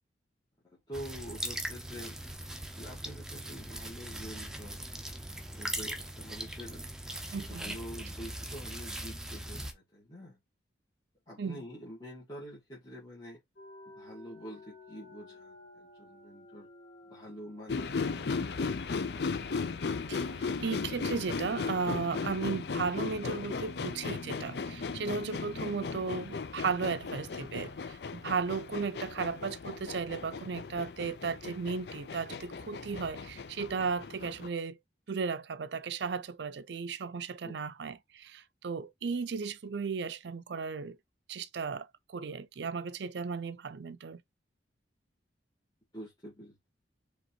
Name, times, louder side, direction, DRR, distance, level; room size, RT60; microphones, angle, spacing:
voice 1, 0.6-2.2 2.8-4.8 5.5-6.8 7.3-10.4 11.3-13.4 14.0-16.7 17.1-17.9 37.4-37.6 45.9-46.5, equal, 20° left, 1.9 m, -46 dB
sound 1, 0.9-9.7, right 1 dB, 5° right, 0.7 m, -40 dB
voice 2, 7.3-7.8 11.4-11.6 20.1-20.3 20.6-34.8 35.1-41.0 41.3-44.2, right 5 dB, 65° right, 0.5 m, -35 dB
sound 2, 13.6-26.0 26.4-26.5 26.8-29.5, right 1 dB, 85° left, 1.8 m, -53 dB
sound 3, 17.7-34.5, left 4 dB, 60° left, 0.5 m, -37 dB
5.0 x 3.5 x 3.0 m
head